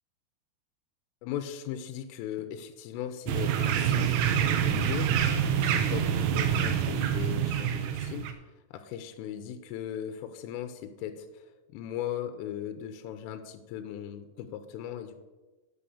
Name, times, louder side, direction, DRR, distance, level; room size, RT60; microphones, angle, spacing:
voice 1, 1.2-5.2 5.4-8.4 8.7-15.1, left 10 dB, 85° left, 8 dB, 3.2 m, -38 dB
sound 1, 3.3-8.3, right 8 dB, 80° right, 3.2 m, -26 dB
8.9 x 6.4 x 7.0 m, 1.2 s
omnidirectional pair, 5.8 m